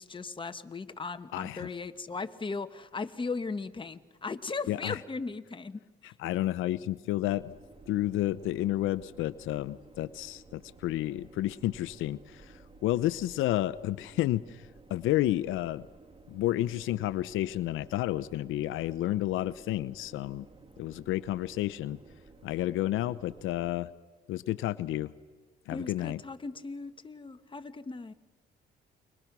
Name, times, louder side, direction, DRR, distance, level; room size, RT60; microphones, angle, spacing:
voice 1, 0.0-6.1 25.7-28.1, left 4 dB, 25° left, 9 dB, 1.2 m, -37 dB
voice 2, 1.3-1.7 4.7-5.0 6.0-7.5 7.9-15.9 16.3-20.5 20.8-22.0 22.4-23.9 24.3-25.1 25.7-26.2, left 14 dB, 85° left, 15 dB, 0.6 m, -31 dB
sound 1, 7.3-23.8, right 3 dB, 25° right, 1.7 m, -55 dB
29.5 x 23.0 x 6.0 m, 1.4 s
cardioid pair, 90°, 20 cm